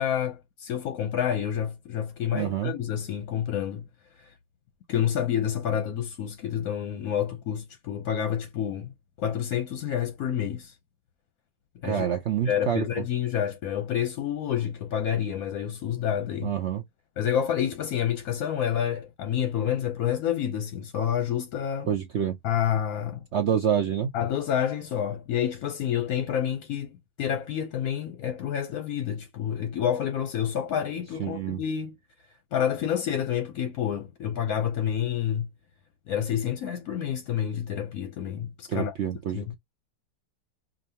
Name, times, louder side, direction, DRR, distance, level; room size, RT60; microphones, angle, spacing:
voice 1, 0.0-3.9 4.2-4.3 4.9-8.9 9.2-10.7 11.8-12.1 12.4-16.5 17.2-21.9 22.4-23.3 24.1-32.0 32.5-35.5 36.1-38.9 39.3-39.6, left 9 dB, 65° left, 1.0 m, -28 dB
voice 2, 2.3-2.7 11.8-12.8 16.4-16.8 21.9-22.4 23.3-24.1 31.2-31.6 38.7-39.6, right 9 dB, 65° right, 0.7 m, -27 dB
5.1 x 2.6 x 2.7 m
omnidirectional pair, 1.9 m